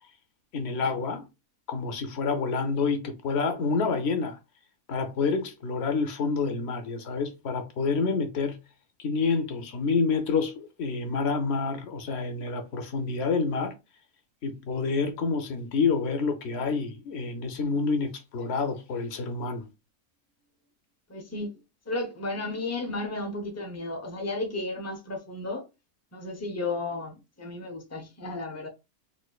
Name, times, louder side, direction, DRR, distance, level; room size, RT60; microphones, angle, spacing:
voice 1, 0.5-1.2 1.7-4.4 4.9-8.6 9.0-13.7 14.4-19.6, left 4 dB, 55° left, 0.8 m, -28 dB
voice 2, 21.1-21.6 21.9-25.6 26.1-28.7, left 2 dB, 25° left, 0.3 m, -33 dB
4.3 x 2.5 x 2.3 m
omnidirectional pair, 1.6 m